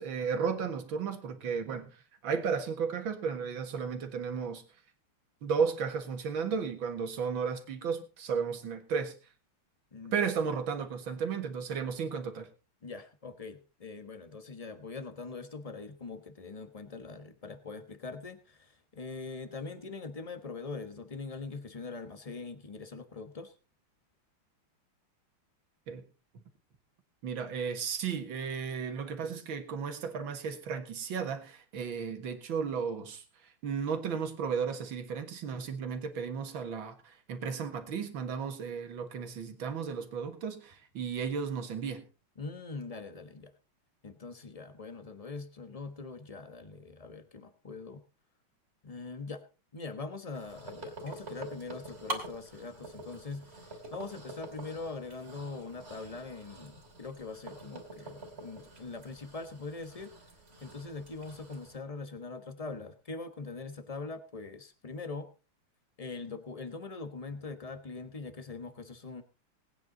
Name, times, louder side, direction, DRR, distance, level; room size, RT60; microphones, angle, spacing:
voice 1, 0.0-4.6 5.4-9.1 10.1-12.5 25.9-26.0 26.3-26.4 27.2-42.1, right 6 dB, 70° right, 7 dB, 2.3 m, -34 dB
voice 2, 9.9-10.2 12.8-23.5 42.4-43.5 44.0-48.0 48.8-49.4 49.7-60.1 60.6-65.3 66.0-69.2, left 3 dB, 25° left, 10 dB, 0.8 m, -42 dB
sound 1, 50.3-61.8, right 2 dB, 30° right, 3.3 m, -46 dB
19.5 x 9.4 x 3.9 m, 0.33 s
omnidirectional pair, 2.3 m